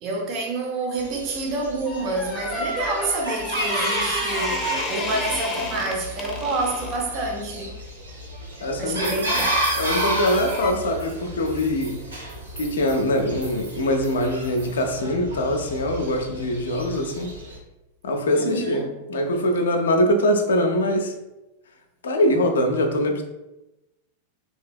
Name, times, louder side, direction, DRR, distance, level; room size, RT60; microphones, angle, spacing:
voice 1, 0.0-7.7 8.8-9.7 18.3-18.9, right 3 dB, 35° right, 0.6 m, -28 dB
Chicken rooster, 1.0-17.6, right 1 dB, 85° right, 1.0 m, -32 dB
sound 1, 1.9-7.1 9.8-10.1 10.6-10.7, left 2 dB, 20° left, 0.6 m, -31 dB
voice 2, 8.6-9.2 9.7-12.0 12.6-17.3 18.0-18.8 19.1-21.1 22.0-23.2, left 1 dB, 65° left, 0.4 m, -23 dB
sound 2, 9.0-14.8, right 3 dB, 65° right, 1.3 m, -40 dB
3.2 x 2.8 x 2.3 m
figure-of-eight pair, 90°, 0 cm